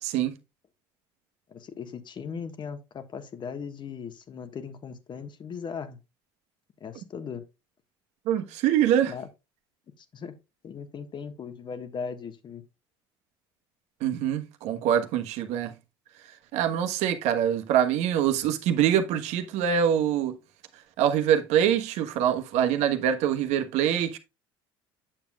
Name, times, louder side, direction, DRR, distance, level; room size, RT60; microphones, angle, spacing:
voice 1, 0.0-0.3 8.3-9.1 14.0-15.7 16.5-20.4 21.0-24.2, right 9 dB, 65° right, 1.3 m, -24 dB
voice 2, 1.5-6.0 6.8-7.4 9.1-9.3 10.0-10.4 10.6-12.6, left 6 dB, 40° left, 1.5 m, -38 dB
8.8 x 7.0 x 2.3 m
hypercardioid pair, 75°, 12 cm